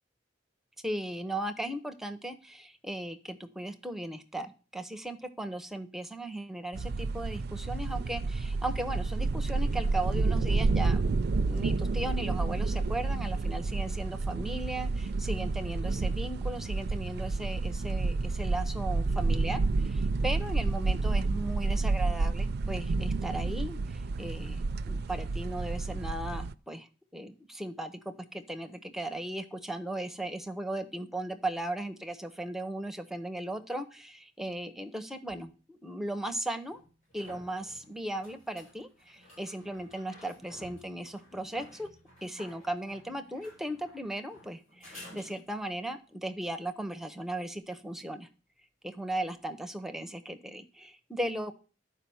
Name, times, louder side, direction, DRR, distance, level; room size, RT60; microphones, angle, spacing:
voice 1, 0.8-11.0 11.4-26.9 27.1-36.8 37.1-41.9 42.2-48.3 48.8-51.5, right 1 dB, ahead, 8 dB, 0.7 m, -37 dB
sound 1, 6.7-26.5, right 3 dB, 60° right, 0.4 m, -30 dB
sound 2, 35.3-35.4 36.7-45.8 49.2-49.3, left 1 dB, 40° left, 7.6 m, -54 dB
11.5 x 5.0 x 7.0 m, 0.36 s
head